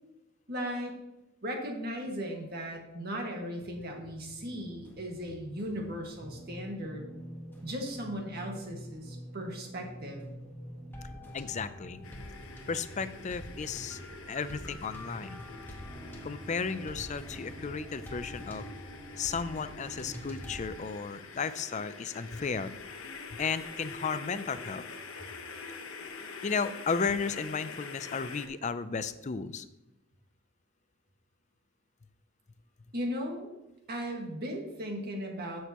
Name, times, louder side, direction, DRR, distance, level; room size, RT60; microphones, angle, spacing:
voice 1, 0.5-0.9 1.4-7.1 7.6-10.2 32.9-33.5 33.9-35.6, equal, 45° right, 1 dB, 1.8 m, -37 dB
sound 1, 3.6-20.7, equal, 10° left, 1.3 m, -46 dB
voice 2, 11.3-12.0 12.7-14.0 14.3-15.4 16.2-18.6 19.2-22.7 23.3-24.8 26.4-29.7, left 5 dB, 35° left, 13 dB, 0.4 m, -34 dB
sound 2, 12.0-28.5, left 4 dB, 75° left, 1.0 m, -46 dB
15.0 x 6.4 x 3.0 m, 0.93 s
head